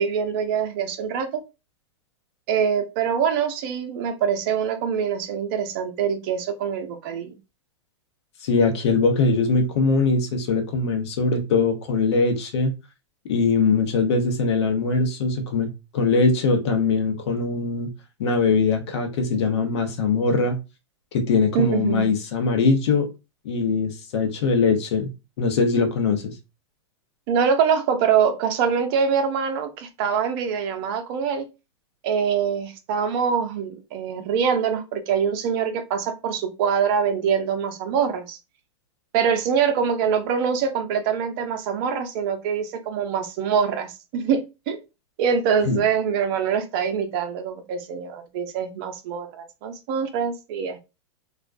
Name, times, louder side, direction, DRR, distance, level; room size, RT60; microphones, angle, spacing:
voice 1, 0.0-1.4 2.5-7.3 21.5-22.1 27.3-31.5 32.0-38.4 39.1-44.8 45.2-50.8, right 7 dB, 50° right, 0.6 m, -24 dB
voice 2, 8.4-12.7 13.3-15.7 15.9-17.9 18.2-20.6 21.1-23.1 23.4-25.1 25.4-26.3 45.6-45.8, left 4 dB, 65° left, 0.8 m, -21 dB
2.4 x 2.1 x 2.4 m
hypercardioid pair, 105°, 15 cm